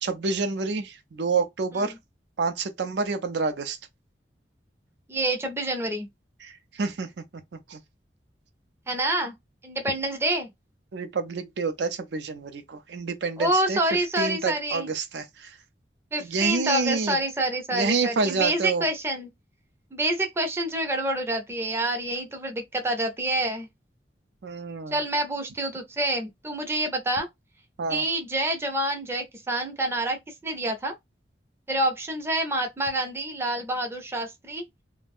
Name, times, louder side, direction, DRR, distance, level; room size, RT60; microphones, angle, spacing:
voice 1, 0.0-1.9 2.4-3.8 6.4-7.8 10.9-13.8 14.2-15.6 16.2-17.2 17.7-18.9 24.4-25.0 27.8-28.1, right 4 dB, 70° right, 0.4 m, -28 dB
voice 2, 5.1-6.1 8.9-9.3 9.6-10.5 13.4-14.9 16.1-19.3 19.9-23.7 24.9-27.3 27.9-30.9 31.7-34.7, right 1 dB, 15° right, 0.5 m, -27 dB
2.4 x 2.1 x 3.4 m
head